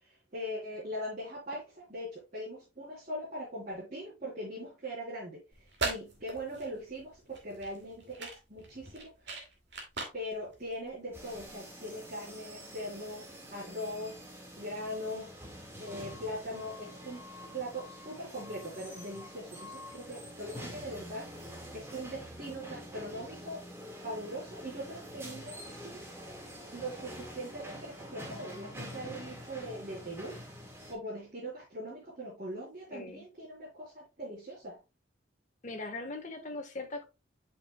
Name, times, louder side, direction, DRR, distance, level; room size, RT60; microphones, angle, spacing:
voice 1, 0.0-1.6 1.9-5.4 5.8-9.1 10.1-14.2 14.6-15.4 15.8-21.3 21.7-23.6 24.0-26.1 26.7-30.4 30.9-34.8, equal, 40° right, 3.5 m, -41 dB
sound 1, 5.5-11.6, right 3 dB, 60° right, 2.4 m, -41 dB
sound 2, 11.1-30.9, equal, 15° right, 1.7 m, -46 dB
voice 2, 32.9-33.2 35.6-37.0, left 2 dB, 40° left, 1.3 m, -40 dB
8.3 x 6.1 x 2.2 m
head